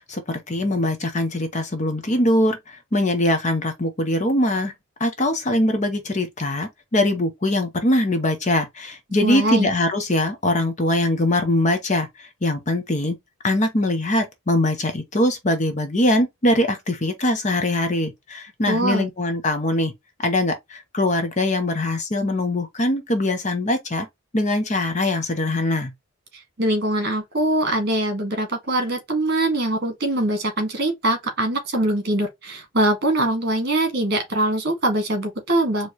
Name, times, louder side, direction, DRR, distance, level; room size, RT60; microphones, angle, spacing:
voice 1, 0.1-4.7 5.0-13.2 13.4-19.9 20.2-24.1 24.3-25.9, left 1 dB, 35° left, 0.8 m, -22 dB
voice 2, 9.2-9.7 18.7-19.1 26.6-35.9, right 1 dB, 45° right, 1.8 m, -22 dB
4.5 x 3.0 x 3.0 m
head